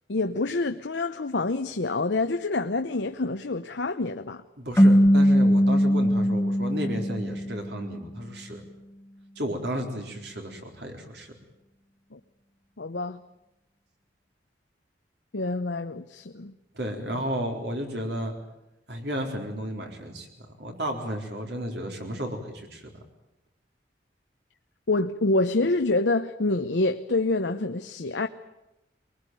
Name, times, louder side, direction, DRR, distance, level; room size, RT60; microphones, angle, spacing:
voice 1, 0.1-4.4 12.1-12.2 12.8-13.2 15.3-16.5 24.9-28.3, left 2 dB, 85° left, 7 dB, 0.9 m, -27 dB
voice 2, 4.6-8.6 9.4-11.3 16.7-18.3 18.9-20.3 20.6-22.9, equal, 75° right, 3 dB, 4.2 m, -33 dB
sound 1, 4.8-7.9, equal, 15° left, 1.2 m, -20 dB
22.5 x 19.5 x 9.3 m, 0.93 s
head